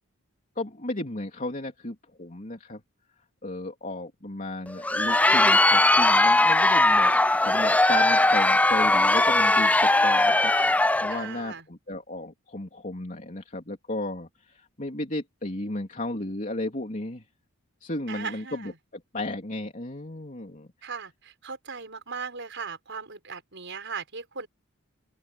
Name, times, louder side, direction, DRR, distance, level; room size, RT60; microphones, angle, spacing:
voice 1, 0.5-2.8 3.4-10.5 11.0-17.2 17.8-20.7, left 1 dB, 35° left, 3.2 m, -34 dB
Crowd, 4.7-11.2, left 2 dB, 5° left, 0.3 m, -20 dB
voice 2, 11.1-11.6 18.1-18.7 20.8-24.5, right 5 dB, 55° right, 6.4 m, -38 dB
open air
head